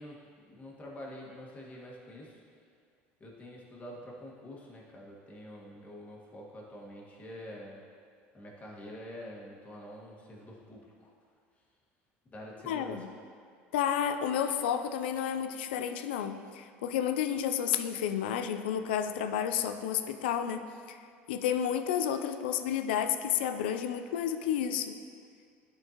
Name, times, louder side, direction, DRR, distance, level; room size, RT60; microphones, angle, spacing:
voice 1, 0.0-2.4 3.2-7.8 8.3-11.1 12.3-13.1, left 1 dB, 25° left, -3 dB, 1.7 m, -46 dB
voice 2, 12.7-13.1 13.7-21.0 21.3-25.0, left 9 dB, 90° left, 8 dB, 0.4 m, -31 dB
11.0 x 4.5 x 3.0 m, 2.2 s
supercardioid pair, 90°, 5 cm